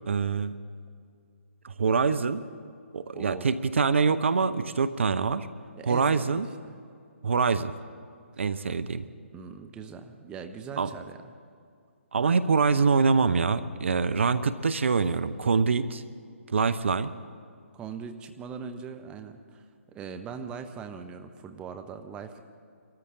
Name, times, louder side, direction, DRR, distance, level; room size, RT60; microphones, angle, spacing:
voice 1, 0.1-0.5 1.6-2.4 2.9-5.5 5.9-6.5 7.2-7.7 8.4-9.0 10.8-10.9 12.1-16.0 16.5-17.1, right 5 dB, 65° right, 14 dB, 0.6 m, -25 dB
voice 2, 3.1-3.6 5.8-6.8 9.3-11.3 17.7-19.6 19.9-22.4, right 6 dB, 15° right, 7 dB, 0.7 m, -41 dB
23.5 x 13.5 x 3.7 m, 2.3 s
figure-of-eight pair, 135°, 7 cm